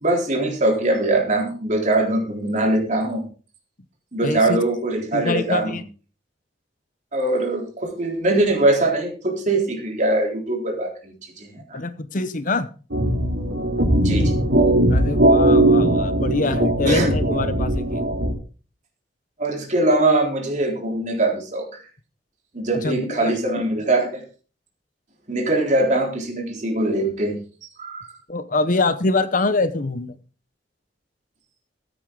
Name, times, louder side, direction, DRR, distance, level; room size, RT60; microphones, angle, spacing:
voice 1, 0.0-3.3 4.1-5.8 7.1-11.8 14.0-14.4 16.9-17.1 19.4-21.7 22.5-24.2 25.3-27.4 27.8-28.1, right 2 dB, 45° right, 1 dB, 3.7 m, -22 dB
voice 2, 4.2-4.6 5.1-5.8 11.7-12.7 14.9-18.0 22.7-23.3 28.3-30.1, left 3 dB, 45° left, 12 dB, 0.9 m, -24 dB
sound 1, 12.9-18.3, right 1 dB, 85° right, 3.1 m, -19 dB
14.5 x 9.1 x 3.9 m, 0.36 s
head